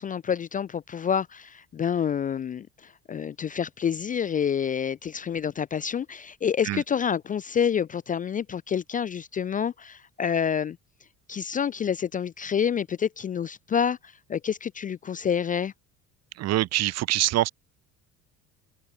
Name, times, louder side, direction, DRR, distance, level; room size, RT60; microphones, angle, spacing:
voice 1, 0.0-10.8 11.3-14.0 14.3-15.7, left 7 dB, 25° left, 0.4 m, -28 dB
voice 2, 16.4-17.5, right 15 dB, 50° right, 0.6 m, -24 dB
cardioid pair, 115°, 34 cm